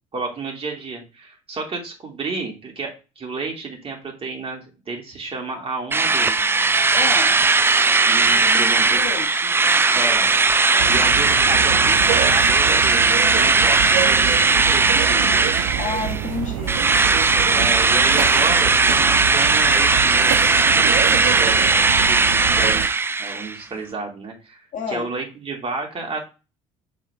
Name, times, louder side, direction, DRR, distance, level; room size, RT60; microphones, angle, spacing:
voice 1, 0.1-6.6 8.1-9.0 9.9-10.3 10.9-15.5 17.5-22.9 23.2-24.6 24.9-26.2, right 3 dB, 35° right, 0 dB, 2.8 m, -31 dB
Drill, 5.9-16.3 16.7-23.6, right 3 dB, 15° right, 0.4 m, -18 dB
voice 2, 6.9-7.4 8.2-9.5 10.7-11.0 15.8-16.9 17.3-17.7 24.7-25.1, left 5 dB, 50° left, 2 dB, 1.6 m, -31 dB
sound 1, 10.8-22.9, right 12 dB, 70° right, 0.6 m, -27 dB
7.3 x 4.3 x 3.5 m, 0.30 s
hypercardioid pair, 65°, 17 cm